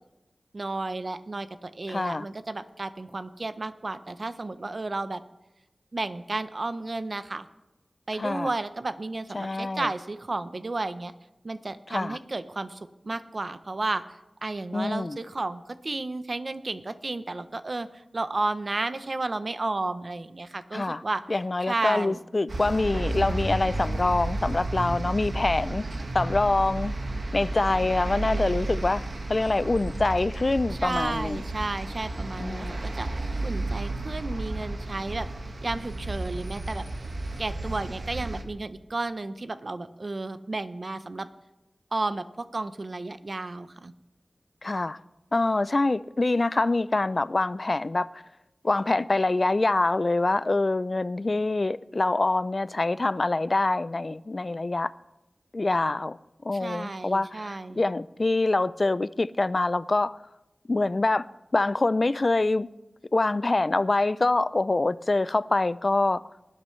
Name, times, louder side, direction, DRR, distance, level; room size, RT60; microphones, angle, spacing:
voice 1, 0.5-5.2 5.9-7.5 8.1-11.1 11.4-14.0 14.4-21.2 21.7-22.2 30.7-33.1 33.4-35.3 35.6-36.9 37.4-41.3 41.9-43.9 56.6-57.8, right 2 dB, 50° right, 0.7 m, -32 dB
voice 2, 1.9-2.3 8.2-8.5 9.3-9.9 11.9-12.2 14.7-15.2 20.7-21.0 21.3-25.8 26.1-26.9 27.3-29.0 29.3-31.4 32.4-32.8 44.6-45.0 45.3-48.2 48.6-54.9 55.5-56.2 56.4-60.2 60.7-61.3 61.5-62.7 63.1-66.2, left 2 dB, 45° left, 0.3 m, -25 dB
sound 1, 22.5-38.4, right 2 dB, 70° right, 1.6 m, -32 dB
20.0 x 11.5 x 3.2 m
wide cardioid pair, 85°, 0 cm